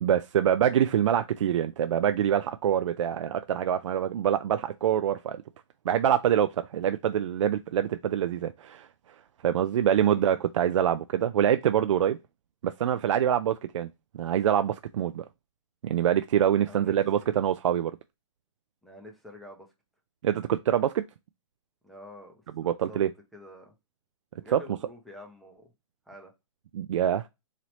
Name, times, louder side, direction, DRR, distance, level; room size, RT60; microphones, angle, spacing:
voice 1, 0.0-5.4 5.9-8.9 9.4-12.2 12.6-13.9 14.1-15.2 15.8-17.9 20.2-21.0 22.6-23.1 24.5-24.6 26.7-27.3, right 10 dB, 70° right, 0.4 m, -25 dB
voice 2, 16.7-17.3 18.8-19.7 21.8-23.0 23.3-23.7 24.4-25.7 26.1-26.3, equal, ahead, 0.6 m, -48 dB
4.1 x 3.1 x 2.9 m
hypercardioid pair, 160°, 17 cm